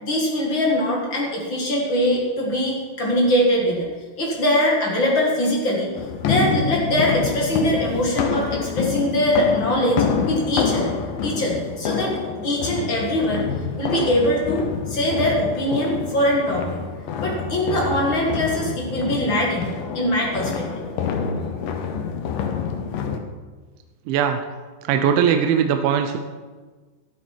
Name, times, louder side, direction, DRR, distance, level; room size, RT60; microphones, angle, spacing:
voice 1, 0.0-3.9 4.2-5.9 6.2-10.9 11.2-13.5 13.8-16.8 17.2-20.8, equal, 50° left, -2 dB, 1.5 m, -22 dB
sound 1, 6.0-23.2, left 6 dB, 85° left, 1.9 m, -27 dB
voice 2, 24.1-24.4 24.9-26.2, right 8 dB, 85° right, 6 dB, 3.1 m, -19 dB
12.5 x 12.0 x 4.6 m, 1.4 s
omnidirectional pair, 5.3 m